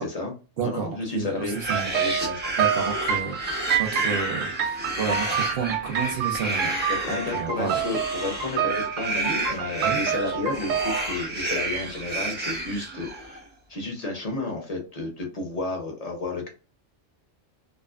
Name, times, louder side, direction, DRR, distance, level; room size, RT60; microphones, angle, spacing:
voice 1, 0.0-2.5 6.4-13.4 13.7-16.5, left 3 dB, 45° left, 2 dB, 0.5 m, -32 dB
voice 2, 0.6-0.9 1.1-1.9 2.6-6.7 7.1-7.8 9.8-10.0, right 5 dB, 60° right, 2 dB, 0.6 m, -31 dB
sound 1, 1.4-13.4, right 2 dB, 15° right, 0.5 m, -31 dB
sound 2, 1.7-11.0, right 8 dB, 85° right, 1.0 m, -28 dB
2.6 x 2.4 x 2.3 m, 0.33 s
omnidirectional pair, 1.3 m